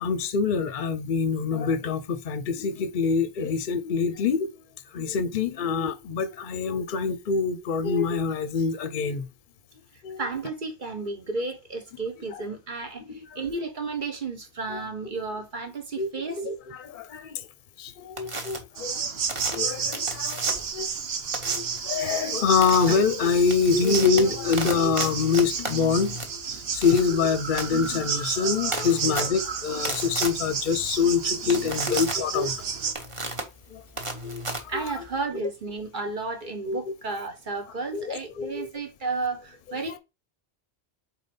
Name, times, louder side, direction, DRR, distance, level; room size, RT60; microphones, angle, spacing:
voice 1, 0.0-4.5 4.9-9.3 10.0-10.2 12.3-12.4 13.0-13.4 14.7-14.8 16.0-16.1 16.4-17.5 17.8-19.1 19.5-20.9 21.4-32.6 32.8-32.9 33.7-33.8 34.2-34.4 34.7-34.8 35.3-35.4 36.7-36.8 37.9-38.7, left 5 dB, 55° left, 0.8 m, -25 dB
voice 2, 10.2-13.0 13.3-16.4 23.7-23.8 31.9-32.0 34.7-40.0, right 3 dB, 45° right, 1.3 m, -32 dB
sound 1, 18.2-18.6 19.3-20.8 21.3-21.8 22.6-22.9 23.3-35.2, right 2 dB, 30° right, 1.2 m, -35 dB
sound 2, 18.8-32.9, right 6 dB, 65° right, 1.1 m, -31 dB
4.4 x 4.1 x 5.2 m
omnidirectional pair, 1.2 m